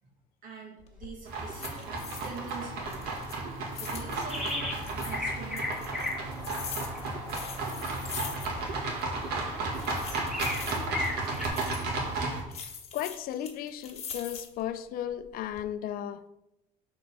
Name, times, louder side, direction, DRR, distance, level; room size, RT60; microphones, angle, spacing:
voice 1, 0.4-3.3 3.7-6.4, right 4 dB, 60° right, 1.9 m, -45 dB
sound 1, 0.8-1.1 1.5-2.6 2.8-5.2 5.6-8.7 9.0-9.1 9.6-11.9 12.5-14.6 15.1-15.6, left 6 dB, 40° left, 1.2 m, -42 dB
sound 2, 1.3-12.4, right 3 dB, 80° right, 1.7 m, -34 dB
Birds in a garden, 4.3-4.8 5.1-11.5, left 2 dB, 5° right, 2.1 m, -38 dB
voice 2, 12.9-16.3, left 11 dB, 65° left, 0.5 m, -35 dB
6.7 x 3.9 x 5.4 m
cardioid pair, 120°, 16 cm